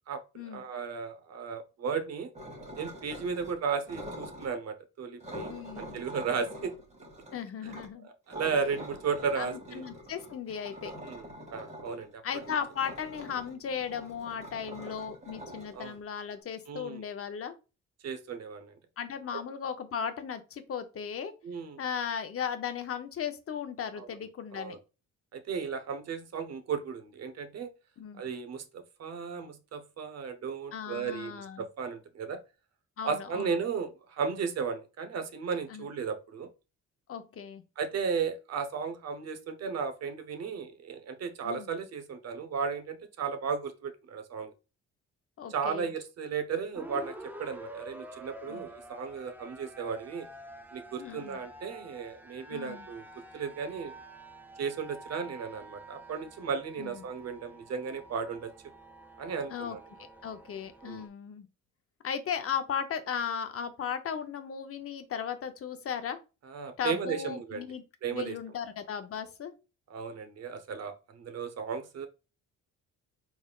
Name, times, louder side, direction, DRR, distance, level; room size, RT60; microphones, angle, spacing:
voice 1, 0.5-2.3 2.8-6.7 8.3-9.8 11.0-12.2 15.7-15.9 16.7-17.0 18.0-18.7 21.4-21.8 24.0-24.1 24.5-24.8 25.3-27.7 28.2-32.4 33.0-36.5 37.8-44.5 45.5-47.1 47.4-50.3 50.7-53.0 53.3-53.9 54.6-58.5 59.2-59.8 60.8-61.0 66.5-67.6 68.0-68.4 69.9-72.1, right 6 dB, 55° right, 0.8 m, -35 dB
sound 1, 2.3-3.5 3.8-4.5 5.2-7.9 8.3-16.3, equal, 25° right, 1.4 m, -45 dB
voice 2, 5.5-6.0 7.3-8.1 9.4-10.9 12.2-17.5 19.0-21.3 21.8-24.8 28.0-28.2 30.7-31.7 33.0-33.5 35.7-35.9 37.1-37.6 41.4-41.7 45.4-45.9 48.5-48.6 51.0-51.4 52.5-52.9 56.8-57.1 59.5-59.8 60.2-61.5 62.0-66.2 66.8-67.8 68.1-69.5, left 7 dB, 50° left, 0.7 m, -36 dB
sound 2, 46.7-61.1, right 2 dB, 5° right, 0.5 m, -48 dB
4.2 x 3.5 x 2.3 m
cardioid pair, 90°, 30 cm